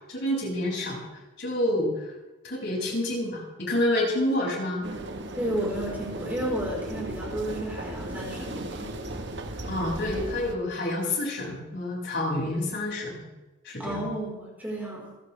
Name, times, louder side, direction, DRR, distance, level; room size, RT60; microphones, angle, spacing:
voice 1, 0.1-1.0 1.4-2.1 2.4-4.8 9.6-13.1 13.6-14.0, left 1 dB, 55° left, -3 dB, 7.0 m, -28 dB
sound 1, 4.8-10.5, right 1 dB, 60° right, 1.6 m, -36 dB
voice 2, 5.4-8.8 13.8-15.2, right 1 dB, 10° right, -4 dB, 4.6 m, -32 dB
28.0 x 12.5 x 3.5 m, 1.1 s
head